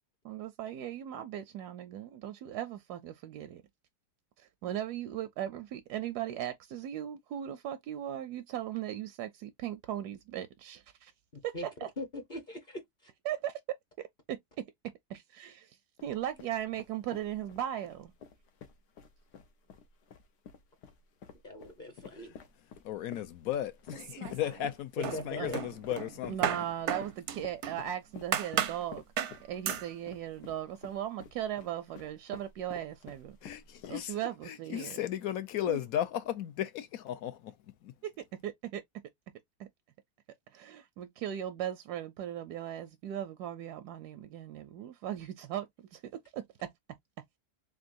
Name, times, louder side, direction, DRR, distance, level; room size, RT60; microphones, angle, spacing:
voice 1, 0.2-3.6 4.6-11.1 11.4-11.9 13.2-13.6 14.0-14.7 15.1-15.7 16.0-18.1 25.4-25.5 26.2-29.0 29.4-33.4 33.9-35.0 35.6-35.8 38.0-38.1 38.4-38.8 39.6-39.7 40.5-46.0 46.3-46.7, right 11 dB, 80° right, 1.1 m, -38 dB
voice 2, 11.3-11.7 12.0-13.1 21.4-22.3 25.0-25.6, left 1 dB, 35° left, 0.9 m, -41 dB
sound 1, 16.0-34.3, left 7 dB, 85° left, 1.4 m, -51 dB
voice 3, 22.8-26.5 33.4-34.2 34.5-37.6 37.8-37.9, left 11 dB, 70° left, 1.0 m, -35 dB
sound 2, 23.9-24.7 25.0-27.8 28.3-28.8 29.2-29.4 29.7-29.9, right 9 dB, 60° right, 0.7 m, -34 dB
3.7 x 3.7 x 2.5 m
omnidirectional pair, 1.7 m